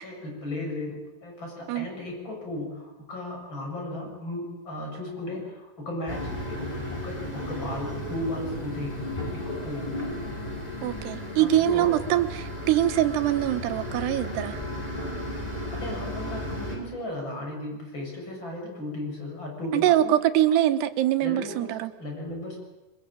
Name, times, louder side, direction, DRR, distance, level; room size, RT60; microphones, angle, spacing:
voice 1, 0.0-9.0 9.3-9.9 11.4-12.0 15.7-20.1 21.2-22.6, left 1 dB, 25° left, 1 dB, 8.0 m, -35 dB
sound 1, 6.1-16.8, left 1 dB, 10° left, 5.5 m, -34 dB
voice 2, 10.8-14.6 19.7-21.9, right 12 dB, 85° right, 10 dB, 3.3 m, -23 dB
24.0 x 21.0 x 9.0 m, 1.1 s
omnidirectional pair, 4.7 m